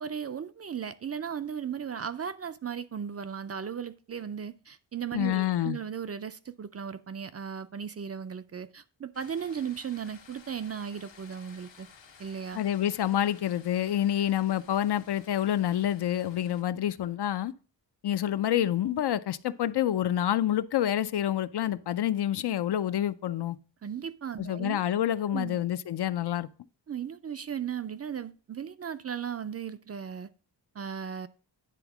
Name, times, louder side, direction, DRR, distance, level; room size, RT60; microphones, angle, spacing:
voice 1, 0.0-11.9 12.2-12.6 23.8-24.8 25.3-25.6 26.9-30.3 30.8-31.3, right 7 dB, 35° right, 0.4 m, -36 dB
voice 2, 5.1-5.8 12.6-17.5 18.0-23.6 24.4-26.5, left 11 dB, 60° left, 0.5 m, -28 dB
sound 1, 9.1-16.6, left 6 dB, 80° left, 1.4 m, -55 dB
9.9 x 3.6 x 5.9 m
wide cardioid pair, 130°, 44 cm